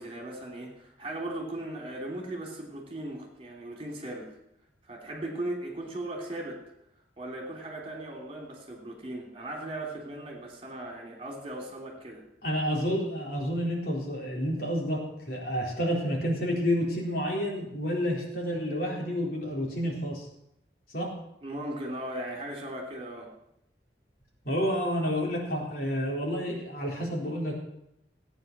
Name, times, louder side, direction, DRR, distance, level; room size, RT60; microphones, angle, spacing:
voice 1, 0.0-4.3 4.8-6.6 7.2-12.2 21.4-23.3, right 1 dB, 30° right, 0 dB, 3.1 m, -38 dB
voice 2, 12.4-20.3 20.9-21.1 24.4-27.6, equal, 55° left, -2 dB, 4.0 m, -29 dB
17.0 x 9.1 x 6.1 m, 0.80 s
head